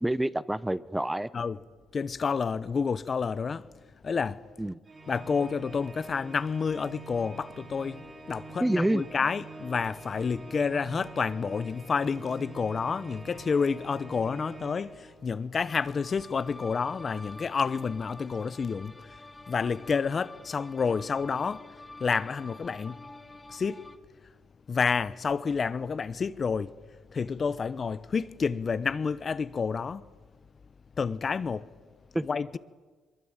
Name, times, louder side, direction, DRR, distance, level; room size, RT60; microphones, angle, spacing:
voice 1, 0.0-1.3 4.6-4.8 8.6-9.0 32.1-32.2, right 1 dB, 10° right, 0.7 m, -27 dB
voice 2, 1.9-3.7 4.0-4.4 5.1-21.7 22.0-23.0 23.5-23.8 24.7-26.7 27.1-30.0 31.0-31.7 32.2-32.6, left 5 dB, 40° left, 0.9 m, -29 dB
Organ, 4.8-15.5, right 3 dB, 35° right, 4.6 m, -46 dB
sound 1, 15.7-24.0, left 2 dB, 15° left, 1.5 m, -48 dB
23.0 x 22.0 x 9.0 m
cardioid pair, 90°, 0 cm